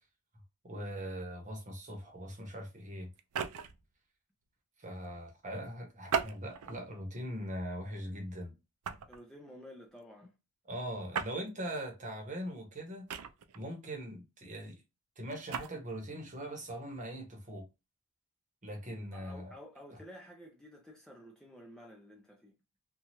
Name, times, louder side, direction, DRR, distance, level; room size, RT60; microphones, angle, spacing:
voice 1, 0.6-3.1 4.8-8.5 10.7-13.0 13.5-14.8 15.2-17.7 18.6-19.5 19.9-20.0, equal, 35° right, 1.0 m, -41 dB
sound 1, 3.2-3.8 6.1-6.8 7.5-7.7 8.8-9.2 11.1-11.4 13.1-13.6 15.3-15.7, right 7 dB, 90° right, 0.4 m, -36 dB
voice 2, 9.1-10.3 19.1-22.5, left 1 dB, 5° left, 0.5 m, -52 dB
2.9 x 2.3 x 2.8 m
head